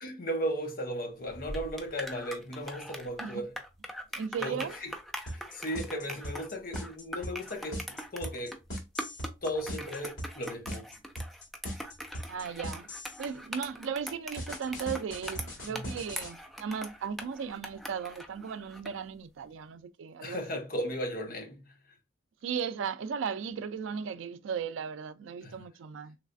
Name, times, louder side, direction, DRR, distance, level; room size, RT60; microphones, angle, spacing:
voice 1, 0.0-3.6 4.4-4.9 5.3-8.6 9.4-10.9 15.7-15.9 20.2-21.7 25.4-25.6, equal, 45° left, 0.8 m, -36 dB
sound 1, 1.2-19.0, equal, ahead, 0.3 m, -42 dB
voice 2, 4.2-4.7 12.3-12.9 13.2-20.4 22.4-26.2, right 6 dB, 80° right, 0.3 m, -36 dB
sound 2, 5.3-13.3 14.4-16.3, equal, 75° left, 1.8 m, -39 dB
3.2 x 3.1 x 2.5 m
head